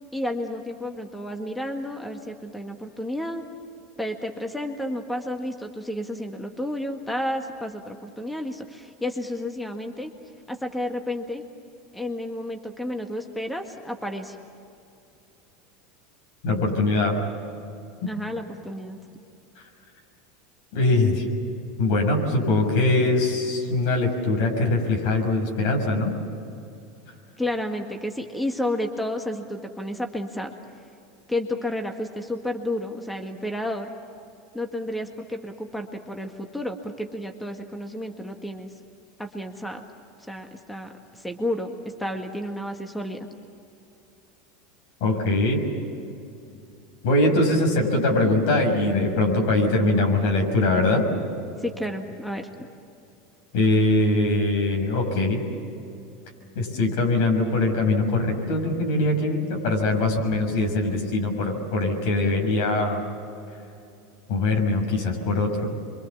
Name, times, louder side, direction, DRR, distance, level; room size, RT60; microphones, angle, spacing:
voice 1, 0.1-3.4 4.0-10.1 10.5-11.4 11.9-14.4 18.0-19.0 27.4-30.5 31.3-33.9 34.5-38.7 39.2-39.8 40.3-41.7 42.0-43.2 51.6-52.5, left 1 dB, 5° left, 4 dB, 1.7 m, -31 dB
voice 2, 16.4-17.1 20.7-21.2 21.8-26.1 45.0-45.6 47.0-51.0 53.5-55.4 56.5-63.0 64.3-65.7, left 2 dB, 70° left, 2 dB, 6.3 m, -22 dB
26.5 x 24.0 x 7.3 m, 2.7 s
hypercardioid pair, 100°, 0 cm